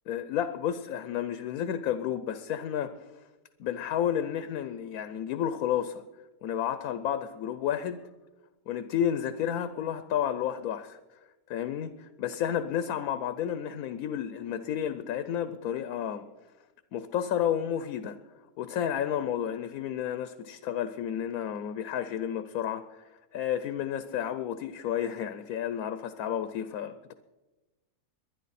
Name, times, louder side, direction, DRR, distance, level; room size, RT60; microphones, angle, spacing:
voice 1, 0.1-2.9 3.6-6.0 6.4-8.0 8.7-11.0 11.5-16.3 16.9-18.2 18.6-23.0 23.3-27.1, left 9 dB, 70° left, 11 dB, 1.1 m, -31 dB
22.5 x 10.0 x 4.2 m, 1.1 s
omnidirectional pair, 1.7 m